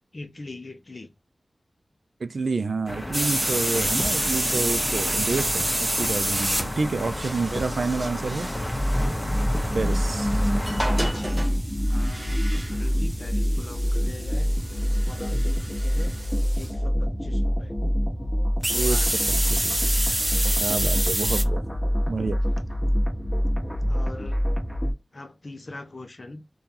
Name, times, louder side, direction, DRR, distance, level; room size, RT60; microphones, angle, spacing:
voice 1, 0.1-1.1 11.1-14.5 15.0-16.1 16.5-17.8 18.7-19.2 21.4-21.7 22.0-22.6 23.8-24.5 25.1-26.4, left 2 dB, 50° left, 0.5 m, -42 dB
voice 2, 2.2-8.5 9.7-10.4 18.7-19.1 19.5-19.7 20.6-21.6 22.1-22.4, right 4 dB, 80° right, 0.4 m, -29 dB
sound 1, 2.9-11.1, left 1 dB, 25° left, 0.9 m, -32 dB
sound 2, 3.1-16.7 18.6-21.4, right 1 dB, 20° right, 0.5 m, -29 dB
sound 3, 8.5-24.9, equal, 5° left, 1.1 m, -25 dB
3.7 x 2.3 x 2.8 m
wide cardioid pair, 55°, 0 cm